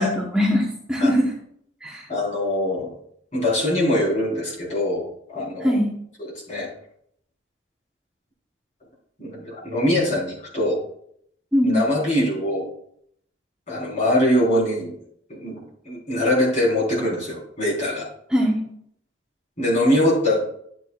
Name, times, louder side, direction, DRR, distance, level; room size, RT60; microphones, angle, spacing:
voice 1, 0.0-1.3 1.8-2.1 5.6-5.9 11.5-11.8 18.3-18.6, equal, 5° right, -4 dB, 1.1 m, -21 dB
voice 2, 2.1-2.9 3.3-5.8 6.2-6.7 9.2-10.8 11.6-12.7 13.7-15.0 15.3-18.1 19.6-20.4, left 1 dB, 40° left, -4 dB, 4.0 m, -23 dB
11.5 x 7.9 x 2.4 m, 0.68 s
head